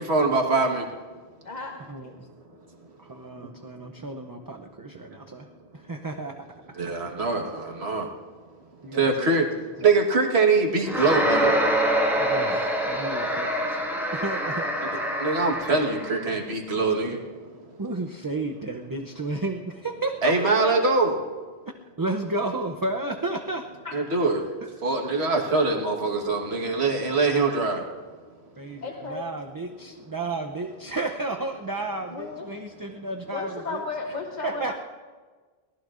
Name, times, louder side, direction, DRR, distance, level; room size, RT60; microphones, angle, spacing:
voice 1, 0.1-0.8 6.8-8.1 9.0-9.5 9.8-11.5 15.2-17.2 20.2-21.1 23.9-24.4 24.8-27.8, right 3 dB, 75° right, 2 dB, 1.7 m, -23 dB
voice 2, 1.4-2.2 20.6-20.8 23.8-24.0 28.8-29.2 32.1-32.5 33.3-34.7, left 4 dB, 45° left, 2 dB, 1.0 m, -34 dB
voice 3, 3.0-5.5 5.7-6.6 8.8-9.3 9.6-9.7 12.2-14.7 17.8-20.3 22.0-23.6 27.1-27.5 28.6-33.8 34.4-34.7, right 2 dB, 25° right, 4 dB, 0.5 m, -32 dB
sound 1, 10.9-16.2, equal, ahead, 1.6 m, -25 dB
23.5 x 18.5 x 2.5 m, 1.4 s
omnidirectional pair, 1.1 m